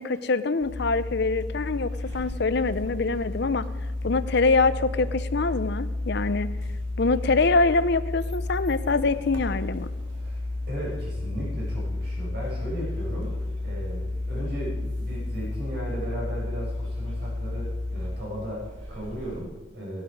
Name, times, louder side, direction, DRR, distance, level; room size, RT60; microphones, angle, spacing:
voice 1, 0.0-3.7 4.0-6.5 7.0-9.9, left 3 dB, 60° left, 13 dB, 0.7 m, -24 dB
sound 1, 0.6-19.4, left 2 dB, 85° right, 2.7 m, -32 dB
voice 2, 10.2-13.4 13.6-20.0, equal, 60° right, -4 dB, 5.4 m, -36 dB
15.5 x 11.5 x 4.8 m, 1.1 s
head